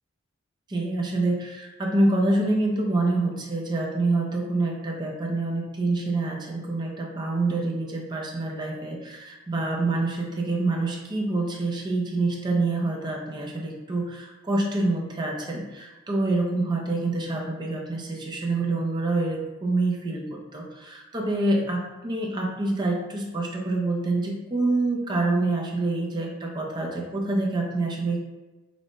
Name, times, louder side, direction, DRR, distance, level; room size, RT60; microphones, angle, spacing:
voice 1, 0.7-28.2, right 2 dB, 20° right, -1 dB, 0.5 m, -26 dB
5.0 x 2.2 x 3.0 m, 1.2 s
head